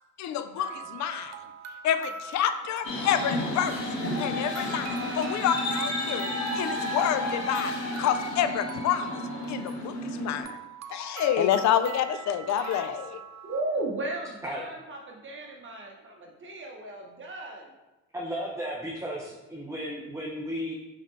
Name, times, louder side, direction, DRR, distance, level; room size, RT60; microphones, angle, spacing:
voice 1, 0.2-1.3 1.8-3.7 4.2-6.3 6.6-7.7 8.0-9.2 9.5-10.6 10.9-13.2, left 9 dB, 70° left, 11 dB, 0.4 m, -28 dB
sound 1, 0.6-13.6, right 7 dB, 60° right, 0.5 m, -43 dB
sound 2, 2.8-10.4, left 1 dB, 85° left, 1.1 m, -31 dB
voice 2, 13.4-17.7, right 2 dB, 40° right, 0 dB, 0.9 m, -35 dB
voice 3, 18.1-20.7, equal, 10° right, -3 dB, 0.7 m, -34 dB
4.1 x 4.0 x 3.1 m, 1.0 s
cardioid pair, 90°, 30 cm